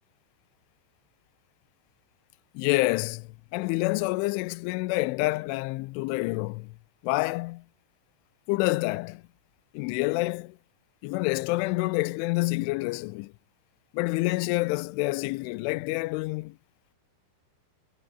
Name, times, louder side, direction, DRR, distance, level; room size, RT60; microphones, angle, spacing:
voice 1, 2.6-6.7 7.0-7.6 8.5-9.2 9.7-10.6 11.0-13.3 13.9-16.6, left 22 dB, 85° left, 2.9 m, -28 dB
omnidirectional pair, 5.7 m